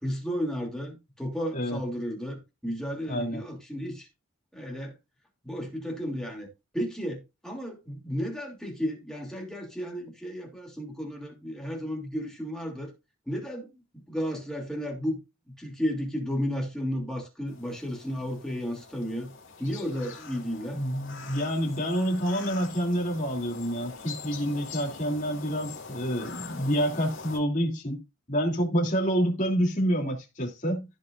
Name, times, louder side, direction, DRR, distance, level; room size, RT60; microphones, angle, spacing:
voice 1, 0.0-4.1 4.5-4.9 5.4-6.5 6.7-12.9 13.3-15.2 15.6-19.3 19.6-20.8, equal, 5° left, 3.0 m, -33 dB
voice 2, 3.1-3.4 20.7-28.0 28.3-30.8, equal, 40° left, 3.2 m, -28 dB
sound 1, 17.5-27.4, left 4 dB, 65° left, 3.4 m, -44 dB
15.5 x 5.4 x 2.6 m
head